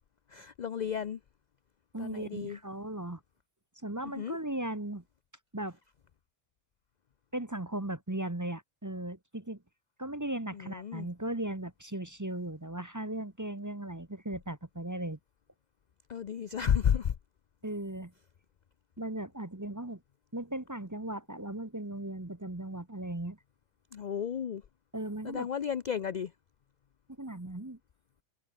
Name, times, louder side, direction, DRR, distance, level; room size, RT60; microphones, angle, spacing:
voice 1, 0.3-1.2 2.0-2.6 4.2-4.4 10.5-11.1 16.1-17.1 23.9-24.6 25.2-26.3, left 8 dB, 50° left, 0.5 m, -32 dB
voice 2, 1.9-3.2 3.8-5.0 5.5-5.8 7.3-9.6 10.0-15.2 17.6-18.1 19.0-20.0 20.3-23.4 24.9-25.5 27.2-27.8, right 1 dB, 15° right, 1.1 m, -37 dB
omnidirectional pair, 1.4 m